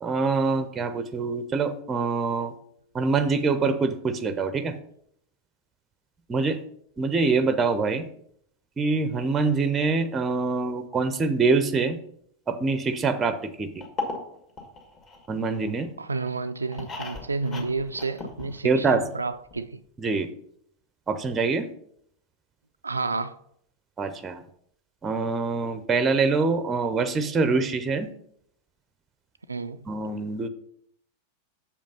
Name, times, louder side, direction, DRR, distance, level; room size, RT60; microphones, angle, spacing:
voice 1, 0.0-2.5 2.9-4.7 6.3-6.6 7.0-8.0 8.8-12.0 12.5-13.7 15.3-15.9 18.6-19.0 20.0-20.3 21.1-21.7 24.0-24.4 25.0-28.1 29.9-30.5, right 4 dB, 20° right, 0.6 m, -25 dB
sound 1, 13.8-15.8 16.3-18.9 19.2-19.3 19.5-19.6, left 3 dB, 30° left, 2.0 m, -37 dB
voice 2, 16.0-19.8 22.8-23.3 29.5-29.8, right 3 dB, 80° right, 0.3 m, -30 dB
6.9 x 5.2 x 5.5 m
figure-of-eight pair, 90°, 0 cm